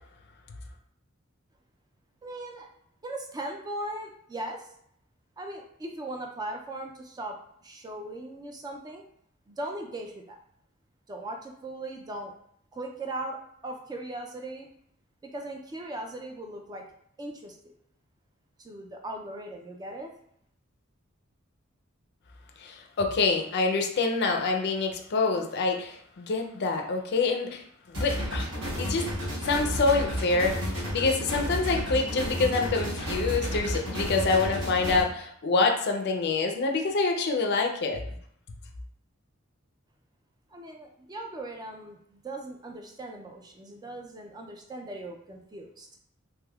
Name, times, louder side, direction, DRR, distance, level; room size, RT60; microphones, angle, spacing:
voice 1, 2.2-2.7 3.0-4.7 5.4-9.0 9.5-10.4 11.1-12.3 12.7-14.7 15.2-16.8 17.2-17.7 18.6-20.1 40.5-45.9, right 1 dB, 20° right, 2 dB, 0.3 m, -39 dB
voice 2, 22.6-28.5 28.8-29.1 29.4-30.6 30.9-38.0, left 3 dB, 55° left, 4 dB, 0.4 m, -26 dB
sound 1, 27.9-35.0, equal, 60° right, 1.2 m, -31 dB
3.3 x 2.9 x 2.3 m, 0.68 s
head